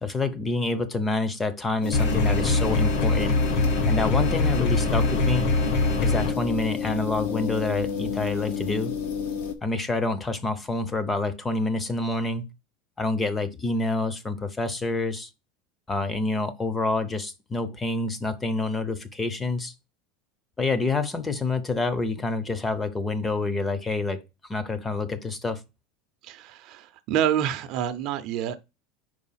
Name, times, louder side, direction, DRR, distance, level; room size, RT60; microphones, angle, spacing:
voice 1, 0.0-3.3 3.9-5.5 6.0-8.9 9.6-12.4 13.0-15.3 15.9-19.7 20.6-24.2 24.5-25.6, left 3 dB, 10° left, 0.6 m, -27 dB
sound 1, 1.8-9.5, left 7 dB, 85° left, 1.3 m, -30 dB
sound 2, 1.9-6.3, left 2 dB, 65° left, 1.4 m, -23 dB
voice 2, 26.2-28.6, right 10 dB, 45° right, 0.6 m, -27 dB
4.8 x 4.7 x 5.6 m
supercardioid pair, 160°, 0 cm